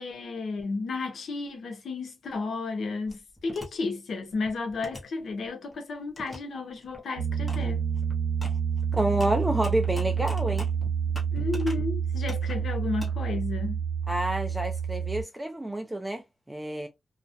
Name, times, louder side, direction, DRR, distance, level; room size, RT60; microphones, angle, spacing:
voice 1, 0.0-7.9 11.3-13.8, left 3 dB, 75° left, 0.6 m, -33 dB
sound 1, 3.1-3.7 4.2-5.7 6.2-6.4 6.7-7.0 7.5-7.6 7.9-11.8 12.2-13.1, left 1 dB, 10° left, 0.8 m, -43 dB
Piano, 7.2-15.2, right 7 dB, 65° right, 0.7 m, -28 dB
voice 2, 8.9-10.7 14.1-16.2 16.5-16.9, right 1 dB, 10° right, 0.4 m, -28 dB
2.3 x 2.1 x 2.6 m
wide cardioid pair, 125°, 0 cm